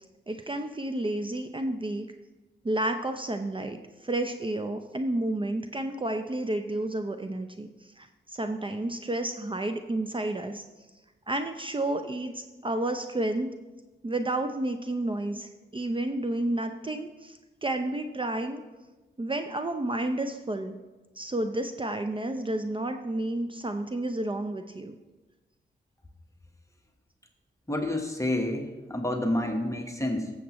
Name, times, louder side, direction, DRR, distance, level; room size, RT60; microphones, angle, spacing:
voice 1, 0.3-2.1 2.6-7.7 8.0-10.6 11.3-13.5 14.0-18.6 19.2-20.7 21.2-24.9, right 1 dB, 25° right, 6 dB, 0.6 m, -31 dB
voice 2, 27.7-30.3, left 1 dB, 15° left, 2 dB, 1.3 m, -29 dB
14.5 x 7.2 x 3.1 m, 1.2 s
cardioid pair, 55°, 19 cm